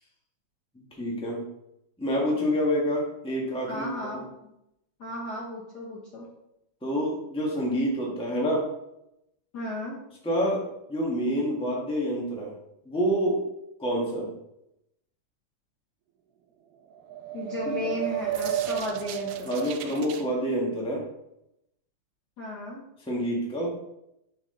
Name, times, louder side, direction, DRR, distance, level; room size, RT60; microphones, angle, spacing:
voice 1, 1.0-1.5 2.0-4.1 6.8-8.7 10.2-10.6 10.9-12.5 12.8-13.4 13.8-14.3 19.4-21.0 23.1-23.7, equal, 5° left, -3 dB, 0.5 m, -27 dB
voice 2, 3.7-4.2 5.0-6.3 9.5-10.0 17.3-19.5 22.4-22.8, left 2 dB, 80° left, -5 dB, 0.9 m, -34 dB
sound 1, 16.9-20.2, right 10 dB, 85° right, 2.2 m, -32 dB
7.3 x 5.1 x 3.9 m, 0.84 s
omnidirectional pair, 3.6 m